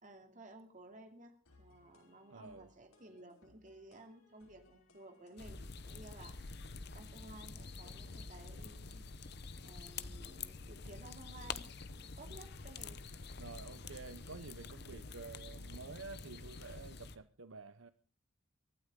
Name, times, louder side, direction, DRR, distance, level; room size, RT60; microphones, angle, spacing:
voice 1, 0.0-6.6 6.9-9.1 9.6-11.7 12.0-13.0, right 1 dB, 35° right, 2.6 m, -55 dB
sound 1, 1.5-17.2, left 2 dB, 85° left, 5.5 m, -67 dB
voice 2, 2.3-2.7 13.4-17.9, right 4 dB, 70° right, 0.8 m, -50 dB
sound 2, 5.4-17.2, left 4 dB, 50° left, 0.8 m, -47 dB
24.0 x 12.5 x 3.7 m
head